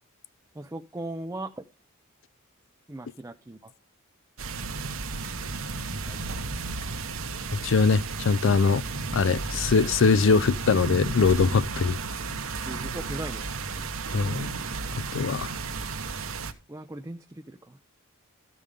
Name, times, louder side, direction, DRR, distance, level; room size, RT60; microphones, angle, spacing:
voice 1, 0.5-1.6 2.9-3.7 6.1-6.4 12.7-13.4 16.7-17.8, right 1 dB, 15° right, 0.4 m, -38 dB
sound 1, 4.4-16.5, right 3 dB, 65° right, 1.0 m, -33 dB
voice 2, 7.6-8.8 9.1-12.0 14.1-14.5 15.1-15.5, left 4 dB, 60° left, 0.4 m, -22 dB
13.0 x 5.5 x 4.9 m
head